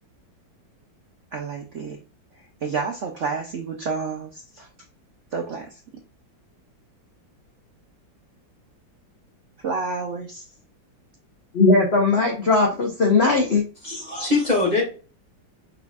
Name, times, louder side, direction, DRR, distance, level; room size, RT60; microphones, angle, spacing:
voice 1, 1.3-2.0 2.6-4.7 5.3-5.8 9.6-10.4, right 5 dB, 70° right, 0.7 m, -29 dB
voice 2, 11.5-13.6, left 3 dB, 45° left, 0.9 m, -18 dB
voice 3, 13.8-14.8, left 3 dB, 20° left, 2.2 m, -22 dB
5.4 x 4.0 x 2.3 m
omnidirectional pair, 2.1 m